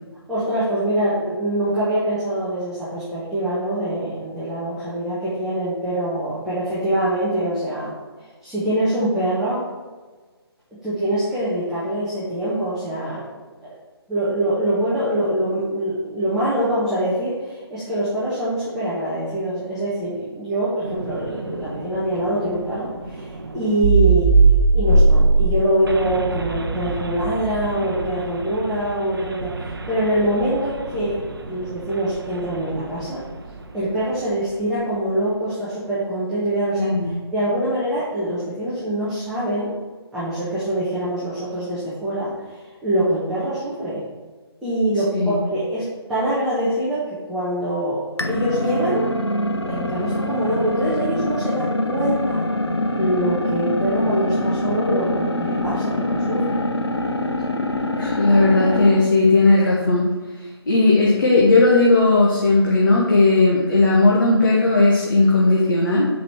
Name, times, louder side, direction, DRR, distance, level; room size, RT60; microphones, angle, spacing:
voice 1, 0.3-7.9 8.4-9.7 10.8-13.7 14.1-31.2 31.5-33.2 33.7-39.7 40.1-44.0 44.6-49.1 49.7-52.5 53.0-56.6, right 1 dB, 5° right, -12 dB, 1.2 m, -24 dB
sound 1, 20.8-33.6, right 3 dB, 60° right, 0.8 m, -22 dB
voice 2, 36.8-37.1 45.1-45.4 58.0-60.1 60.7-66.1, left 2 dB, 50° left, -5 dB, 1.4 m, -16 dB
sound 2, 48.2-59.1, left 1 dB, 80° left, 0.8 m, -24 dB
6.4 x 5.1 x 4.7 m, 1.4 s
figure-of-eight pair, 145°, 14 cm